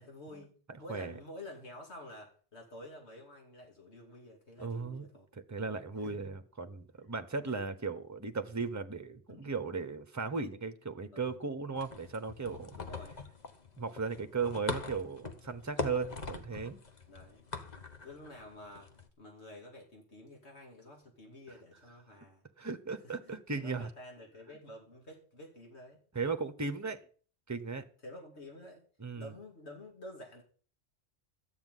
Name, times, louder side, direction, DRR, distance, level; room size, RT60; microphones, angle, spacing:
voice 1, 0.0-5.3 6.0-6.3 7.5-7.6 9.3-9.5 11.1-11.3 12.7-13.2 16.0-16.2 17.1-17.5 18.0-18.9 19.2-22.4 23.0-26.0 28.0-28.8 29.1-30.4, left 1 dB, 85° left, 3.0 m, -50 dB
voice 2, 4.6-5.1 5.3-12.7 13.8-16.8 22.6-23.9 26.1-27.0 27.5-27.8 29.0-29.3, right 4 dB, 15° right, 1.0 m, -36 dB
sound 1, 11.7-19.1, left 3 dB, 40° left, 1.3 m, -42 dB
13.0 x 5.9 x 9.2 m
omnidirectional pair, 1.1 m